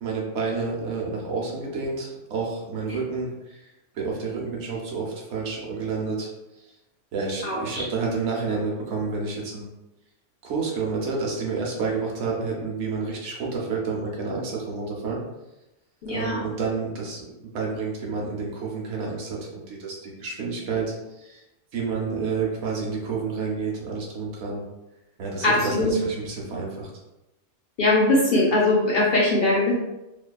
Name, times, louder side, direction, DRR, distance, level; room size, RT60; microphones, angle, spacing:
voice 1, 0.0-3.6 3.9-6.3 7.1-9.7 10.4-15.2 16.1-21.4 21.7-24.6 25.2-26.9, right 4 dB, 70° right, -1 dB, 0.9 m, -29 dB
voice 2, 7.4-7.8 16.0-16.4 25.4-25.9 27.8-29.7, left 2 dB, 60° left, -5 dB, 0.6 m, -21 dB
2.6 x 2.3 x 2.2 m, 0.96 s
omnidirectional pair, 1.3 m